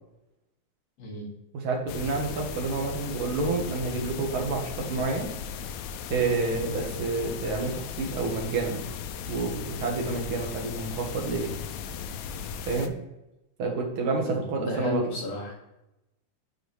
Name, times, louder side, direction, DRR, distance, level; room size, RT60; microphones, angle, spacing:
voice 1, 1.0-1.3 14.3-15.5, left 2 dB, 55° left, -4 dB, 3.1 m, -33 dB
voice 2, 1.6-5.3 6.1-8.8 9.3-11.5 12.7-12.9 13.6-15.1, right 3 dB, 50° right, 0 dB, 1.9 m, -29 dB
sound 1, 1.9-12.9, left 6 dB, 80° left, 1.7 m, -37 dB
7.9 x 4.7 x 3.3 m, 0.92 s
omnidirectional pair, 3.5 m